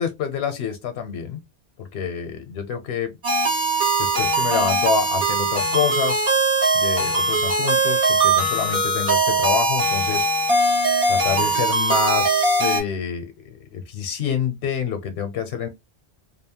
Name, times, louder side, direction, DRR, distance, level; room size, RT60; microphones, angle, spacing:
voice 1, 0.0-1.4 1.8-3.1 4.0-6.3 6.7-10.3 11.1-15.7, left 7 dB, 85° left, 0.8 m, -27 dB
sound 1, 3.2-12.8, right 2 dB, 65° right, 1.5 m, -20 dB
2.7 x 2.0 x 2.7 m
omnidirectional pair, 1.0 m